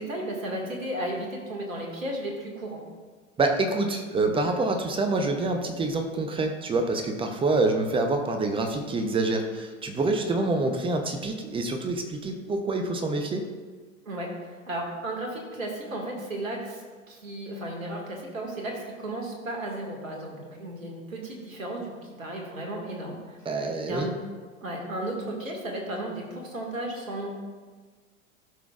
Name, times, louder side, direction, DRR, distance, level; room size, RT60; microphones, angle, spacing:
voice 1, 0.0-2.8 14.1-23.4 23.9-24.2 24.6-27.3, right 1 dB, 75° right, 0 dB, 2.0 m, -34 dB
voice 2, 3.4-13.4 23.5-24.1, right 2 dB, 15° right, 5 dB, 0.7 m, -26 dB
13.5 x 6.0 x 2.4 m, 1.5 s
figure-of-eight pair, 90°, 40 cm